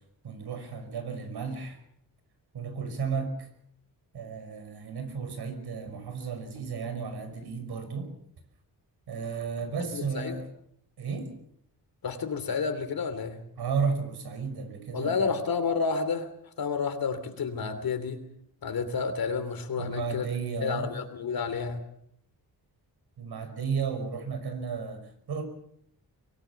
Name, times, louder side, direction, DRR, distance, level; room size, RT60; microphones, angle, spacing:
voice 1, 0.2-1.8 2.5-3.5 4.1-8.1 9.1-10.5 11.0-11.3 13.6-15.3 19.8-20.9 23.2-25.4, right 5 dB, 80° right, 8 dB, 5.7 m, -33 dB
voice 2, 9.9-10.4 12.0-13.4 14.9-16.3 16.6-18.2 18.6-20.2 20.6-21.8, left 5 dB, 65° left, 9 dB, 3.1 m, -30 dB
24.0 x 18.5 x 7.1 m, 0.70 s
wide cardioid pair, 135°, 38 cm